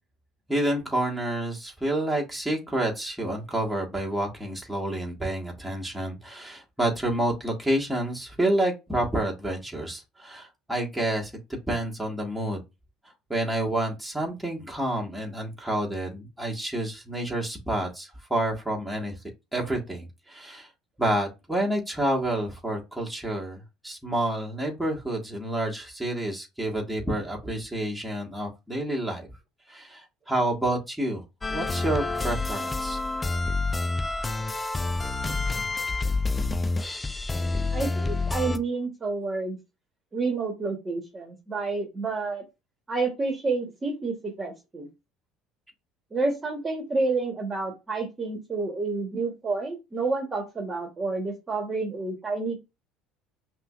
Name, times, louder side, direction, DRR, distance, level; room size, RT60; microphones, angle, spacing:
voice 1, 0.5-11.3 11.7-12.6 13.3-19.2 19.5-20.7 21.0-29.3 29.7-31.2 31.5-33.0, right 1 dB, 5° right, 1.6 m, -29 dB
sound 1, 31.4-38.6, left 3 dB, 20° left, 0.4 m, -28 dB
voice 2, 37.7-39.6 40.1-42.4 42.9-44.9 46.1-52.6, right 3 dB, 25° right, 1.3 m, -29 dB
5.5 x 2.3 x 2.5 m
hypercardioid pair, 65°, 0 cm